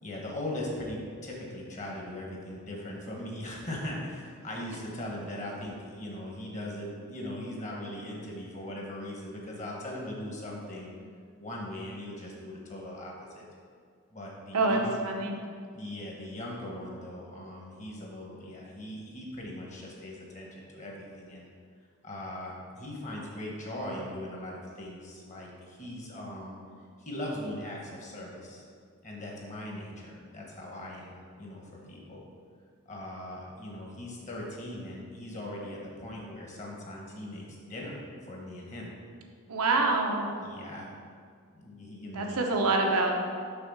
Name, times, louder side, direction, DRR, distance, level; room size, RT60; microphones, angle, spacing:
voice 1, 0.0-10.9 11.4-13.4 14.1-15.0 15.7-21.5 22.0-26.6 27.0-28.6 29.0-32.2 32.8-38.0 38.3-38.9 40.4-41.0 41.5-42.6, left 1 dB, 35° left, -2 dB, 1.1 m, -40 dB
voice 2, 14.5-15.4 39.5-40.3 42.1-43.2, right 3 dB, 85° right, 1 dB, 0.8 m, -26 dB
5.9 x 3.7 x 5.9 m, 2.1 s
head